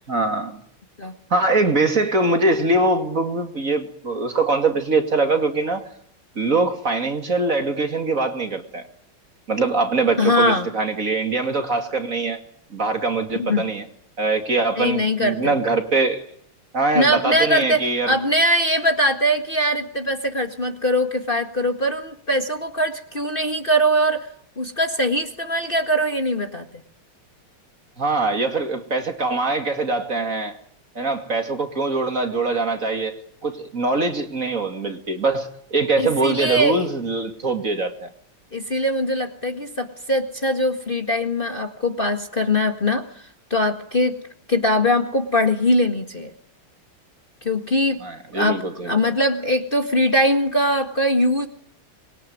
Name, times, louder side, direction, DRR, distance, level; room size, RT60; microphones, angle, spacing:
voice 1, 0.1-0.6 1.3-5.9 6.4-8.9 9.5-12.4 12.7-13.9 14.2-16.2 16.7-18.2 28.0-30.5 30.9-38.1 48.0-49.1, right 3 dB, 40° right, 6 dB, 2.8 m, -23 dB
voice 2, 10.2-10.7 13.4-13.7 14.8-15.6 16.9-24.3 24.6-26.7 36.0-36.9 38.5-44.2 44.5-46.3 47.4-48.0 48.3-51.5, equal, 25° left, 5 dB, 1.9 m, -21 dB
26.0 x 22.5 x 9.5 m, 0.66 s
omnidirectional pair, 2.3 m